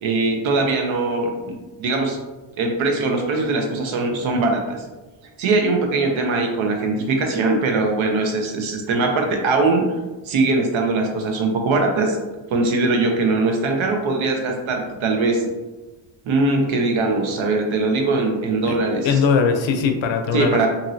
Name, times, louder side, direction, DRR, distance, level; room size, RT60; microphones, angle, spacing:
voice 1, 0.0-2.2 2.6-4.8 5.4-9.8 10.2-12.2 12.5-15.5 16.3-19.2 20.3-20.7, right 3 dB, 80° right, 2 dB, 0.7 m, -21 dB
voice 2, 19.0-20.7, left 5 dB, 70° left, 6 dB, 0.5 m, -20 dB
2.9 x 2.6 x 2.6 m, 1.1 s
wide cardioid pair, 120°, 47 cm